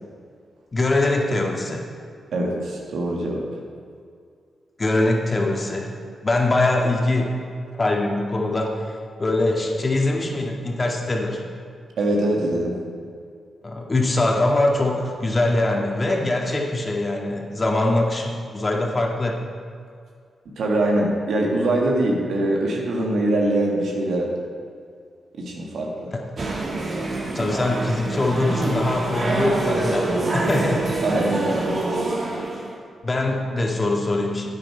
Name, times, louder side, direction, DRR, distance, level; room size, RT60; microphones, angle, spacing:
voice 1, 0.7-1.9 4.8-5.9 6.2-7.4 7.7-8.9 9.2-11.4 13.6-19.4 26.1-26.2 27.3-30.8 33.0-34.5, left 2 dB, 35° left, 1 dB, 1.8 m, -22 dB
voice 2, 2.3-3.4 12.0-12.8 20.6-24.3 25.4-26.1 30.6-30.7 31.0-31.8, right 1 dB, 75° right, -1 dB, 1.7 m, -23 dB
sound 1, 26.4-32.8, right 2 dB, 55° right, 1.9 m, -26 dB
9.7 x 8.9 x 4.5 m, 2.2 s
supercardioid pair, 45°, 0 cm